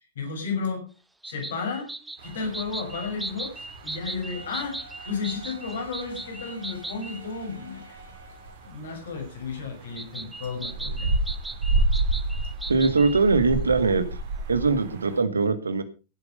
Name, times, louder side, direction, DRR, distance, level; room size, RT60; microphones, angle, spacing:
voice 1, 0.1-0.9 1.2-1.9 2.2-4.8 5.0-8.0 8.6-11.1, left 5 dB, 65° left, 3 dB, 6.6 m, -33 dB
sound 1, 1.2-7.2 10.0-13.2, right 2 dB, 5° right, 1.1 m, -38 dB
sound 2, 2.2-15.2, right 2 dB, 60° right, 3.4 m, -32 dB
Wind instrument woodwind instrument, 4.3-8.9, right 2 dB, 85° left, 3.0 m, -48 dB
voice 2, 12.7-14.0 14.5-15.8, right 4 dB, 75° right, 11 dB, 1.8 m, -21 dB
17.0 x 8.4 x 5.3 m, 0.33 s
figure-of-eight pair, 90°, 0 cm